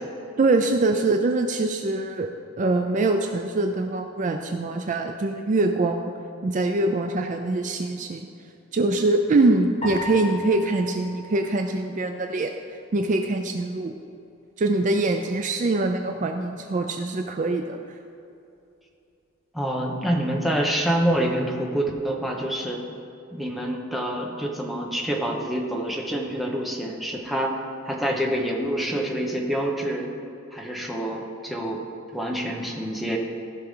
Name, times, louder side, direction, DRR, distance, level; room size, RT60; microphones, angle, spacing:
voice 1, 0.4-2.3 2.6-6.1 6.4-8.3 8.7-12.5 12.9-13.9 14.6-18.0, right 2 dB, 40° right, 5 dB, 0.4 m, -23 dB
sound 1, 9.8-12.3, left 2 dB, 30° left, 2.1 m, -36 dB
voice 2, 19.5-22.8 23.3-27.6 27.8-30.1 30.5-31.8 32.1-33.2, right 1 dB, ahead, -1 dB, 1.0 m, -26 dB
15.5 x 5.8 x 3.8 m, 2.7 s
head